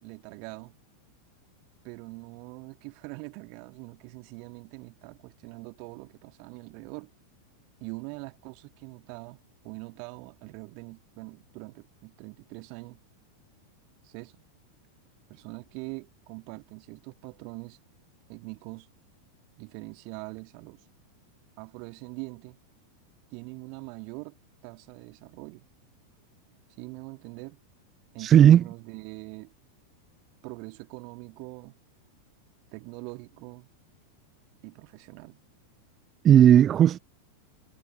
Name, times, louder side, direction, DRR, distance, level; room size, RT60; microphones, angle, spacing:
voice 1, 0.0-0.7 1.8-7.1 7.8-9.4 9.6-13.0 14.0-14.4 15.3-17.8 18.3-18.9 19.6-20.8 21.6-22.6 23.3-24.3 24.6-25.7 26.8-27.6 28.1-29.5 30.4-31.8 32.7-33.7 34.6-35.4, right 36 dB, 45° right, 1.8 m, -43 dB
voice 2, 28.2-28.6 36.2-37.0, right 10 dB, 25° right, 0.4 m, -15 dB
figure-of-eight pair, 90°, 0 cm